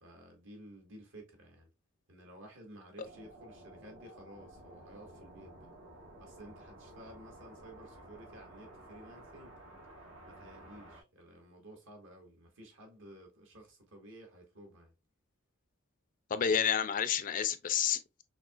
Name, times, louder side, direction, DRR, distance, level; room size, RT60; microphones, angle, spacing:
voice 1, 0.0-1.7 2.1-5.7 6.2-9.6 10.2-14.9, right 1 dB, 65° right, 1.6 m, -53 dB
sound 1, 3.0-11.0, right 1 dB, 80° right, 1.9 m, -53 dB
voice 2, 16.3-18.2, left 8 dB, 40° left, 0.4 m, -30 dB
6.0 x 2.8 x 2.4 m
head